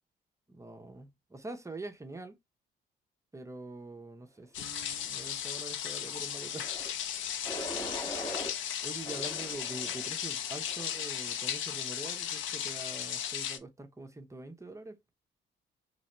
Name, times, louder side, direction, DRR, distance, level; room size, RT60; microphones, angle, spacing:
voice 1, 0.5-2.4 3.3-6.7 8.8-15.0, right 2 dB, 15° right, 0.7 m, -44 dB
sound 1, 4.5-13.6, left 9 dB, 75° left, 0.6 m, -36 dB
sound 2, 6.5-6.9 7.4-8.5 9.0-10.1 10.7-11.1, equal, 15° left, 1.2 m, -41 dB
4.0 x 3.3 x 3.0 m
cardioid pair, 90°, 20 cm